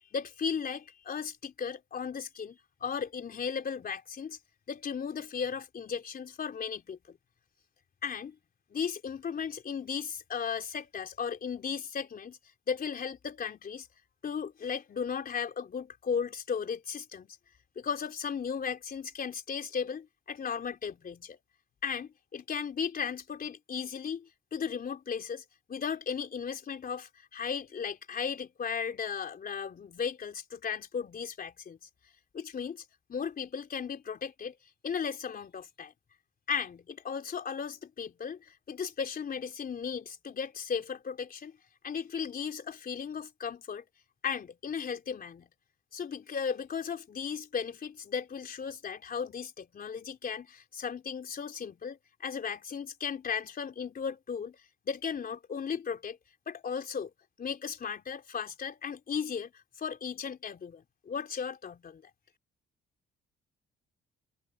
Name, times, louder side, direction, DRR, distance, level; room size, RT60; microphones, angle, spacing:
voice 1, 0.1-4.4 4.7-7.2 8.0-8.4 8.7-12.4 12.7-13.9 14.2-17.3 17.8-21.4 21.8-25.4 25.7-31.8 32.3-32.8 33.1-34.5 34.8-35.9 36.5-41.6 41.8-43.8 44.2-45.5 45.9-54.6 54.9-56.2 56.5-57.1 57.4-59.5 59.8-62.0, left 6 dB, 45° left, 3.5 m, -36 dB
cardioid pair, 90°, 20 cm